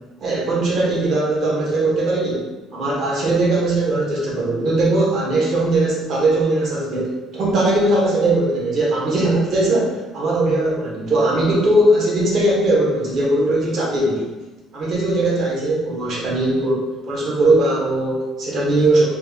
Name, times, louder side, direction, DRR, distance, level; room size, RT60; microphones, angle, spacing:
voice 1, 0.2-2.4 2.7-14.3 14.7-19.1, right 2 dB, 50° right, -4 dB, 0.9 m, -19 dB
3.3 x 2.2 x 3.4 m, 1.1 s
cardioid pair, 135°, 0 cm